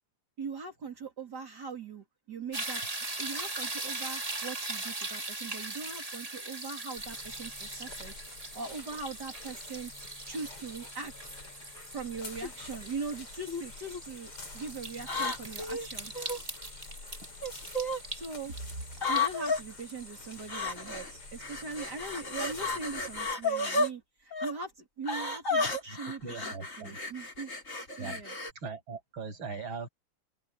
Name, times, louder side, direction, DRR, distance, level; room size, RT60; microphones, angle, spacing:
voice 1, 0.4-2.8 3.2-8.1 8.5-9.9 10.2-11.1 11.9-16.1 18.1-27.5 28.0-28.3, right 4 dB, 50° right, 3.4 m, -41 dB
sound 1, 2.5-21.6 22.1-22.2, right 2 dB, 20° right, 1.8 m, -41 dB
sound 2, 7.0-23.4, left 3 dB, 85° left, 7.9 m, -48 dB
sound 3, 12.4-12.7 13.5-14.0 15.0-16.4 17.4-18.0 19.0-19.6 20.5-21.1 21.4-23.9 24.3-24.5 25.1-28.5, left 2 dB, 35° left, 4.2 m, -32 dB
voice 2, 25.8-27.0 28.0-28.2 28.6-29.9, right 4 dB, 65° right, 7.8 m, -40 dB
omnidirectional pair, 2.4 m